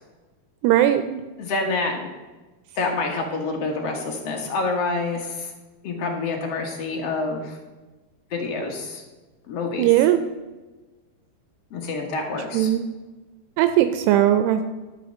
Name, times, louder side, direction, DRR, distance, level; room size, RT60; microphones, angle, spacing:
voice 1, 0.6-1.2 9.8-10.2 12.5-12.8 13.6-14.6, right 12 dB, 85° right, 9 dB, 2.7 m, -18 dB
voice 2, 1.4-2.1 2.8-5.5 5.8-7.6 8.3-9.0 9.5-9.9 11.7-12.7, left 3 dB, 55° left, 1 dB, 1.9 m, -27 dB
12.0 x 6.2 x 6.6 m, 1.2 s
omnidirectional pair, 4.8 m